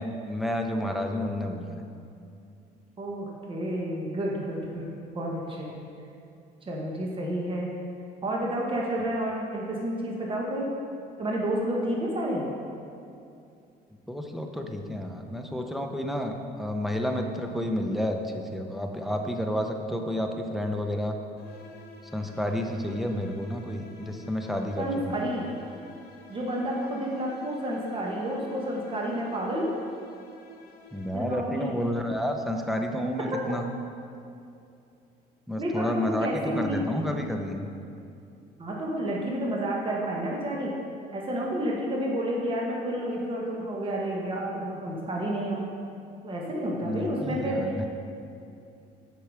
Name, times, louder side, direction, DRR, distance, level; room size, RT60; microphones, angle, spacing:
voice 1, 0.0-1.7 14.1-21.2 22.1-25.2 30.9-33.7 35.5-37.7 46.8-47.9, equal, ahead, 3 dB, 0.7 m, -30 dB
voice 2, 3.0-5.7 6.6-7.7 8.2-10.7 11.2-12.4 24.8-25.5 26.3-29.7 31.1-31.7 35.6-37.1 38.6-40.7 41.1-45.6 46.2-47.9, right 1 dB, 30° right, -2 dB, 1.4 m, -30 dB
sound 1, 21.4-31.6, left 3 dB, 65° left, 1.1 m, -50 dB
7.8 x 5.9 x 4.9 m, 2.6 s
cardioid pair, 110°, 17 cm